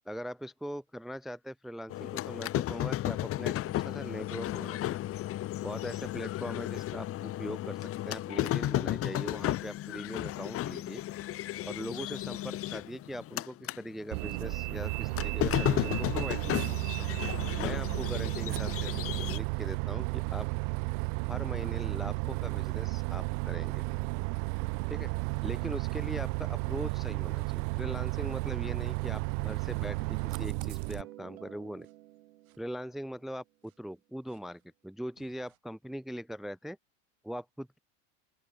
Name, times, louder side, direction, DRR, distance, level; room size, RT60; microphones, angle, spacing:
voice 1, 0.1-5.0 5.6-11.0 11.6-16.8 17.5-18.9 19.3-20.5 21.3-23.8 24.9-25.1 25.4-31.9 32.6-33.4 33.8-36.8 37.2-37.8, equal, ahead, 0.8 m, -41 dB
sound 1, 1.9-13.8 14.2-19.4, left 14 dB, 35° left, 1.6 m, -34 dB
Bus, 14.1-31.0, right 36 dB, 60° right, 2.5 m, -33 dB
sound 2, 29.6-33.2 33.7-33.8 34.3-34.4 35.2-35.6, right 15 dB, 80° right, 6.8 m, -49 dB
open air
supercardioid pair, 135°, 41 cm